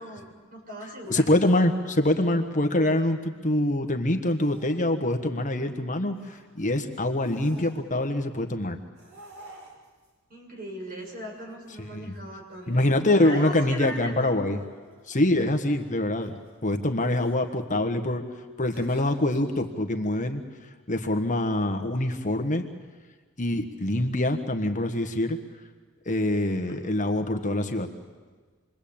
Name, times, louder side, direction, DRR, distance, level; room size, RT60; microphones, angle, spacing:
voice 1, 0.0-1.2 10.3-12.8 13.2-14.3 26.6-26.8, equal, 40° right, 0 dB, 6.8 m, -38 dB
voice 2, 1.1-8.8 11.8-12.1 12.7-14.6 15.1-16.3 16.6-18.2 18.6-20.4 20.9-22.6 23.4-25.4 26.0-27.9, left 1 dB, 35° left, 5 dB, 1.5 m, -25 dB
sound 1, 4.4-4.8 5.2-5.5 6.1-6.4 7.1-8.0 8.9-10.1 11.0-12.2 12.5-15.6 16.2-16.6 17.0-17.3 18.6-19.4, right 1 dB, 60° right, 6.2 m, -51 dB
28.0 x 23.0 x 8.8 m, 1.5 s
head